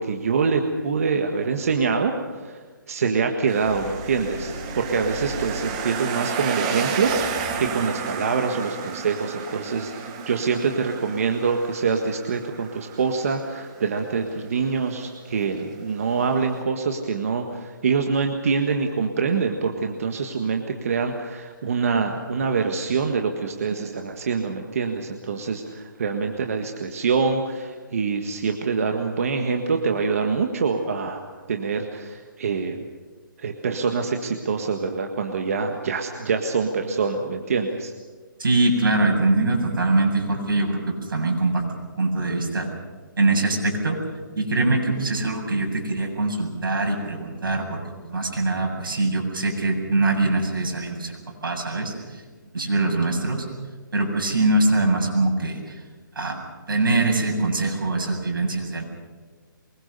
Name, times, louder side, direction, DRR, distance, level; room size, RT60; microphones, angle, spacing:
voice 1, 0.0-2.2 2.4-2.6 2.9-31.2 31.5-32.8 33.4-37.9, right 5 dB, 45° right, 4 dB, 1.6 m, -25 dB
sound 1, 3.5-16.6, right 6 dB, 20° right, 1.2 m, -33 dB
sound 2, 3.6-6.1 7.0-8.0, equal, 5° left, 7.2 m, -38 dB
voice 2, 38.4-41.7 42.0-42.7 43.2-44.0 44.4-47.8 48.1-51.1 51.4-51.9 52.5-53.4 53.9-55.6 56.2-56.4 56.7-58.8, right 2 dB, 80° right, 1 dB, 7.8 m, -23 dB
24.0 x 22.0 x 6.8 m, 1.4 s
hypercardioid pair, 175°, 11 cm